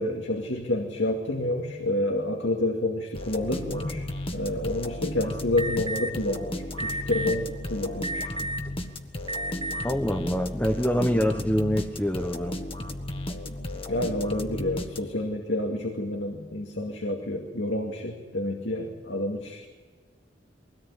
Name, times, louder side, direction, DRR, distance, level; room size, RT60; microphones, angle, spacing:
voice 1, 0.0-4.0 4.3-8.3 13.9-19.7, left 1 dB, 80° left, 2 dB, 2.4 m, -29 dB
sound 1, 3.1-15.4, left 1 dB, 30° left, 1.6 m, -35 dB
Alarm, 5.6-6.1 6.8-7.3 8.0-8.7 9.2-9.8, right 2 dB, 30° right, 2.2 m, -31 dB
voice 2, 9.8-12.6, equal, 10° left, 3 dB, 1.0 m, -25 dB
22.5 x 17.5 x 9.9 m, 1.4 s
head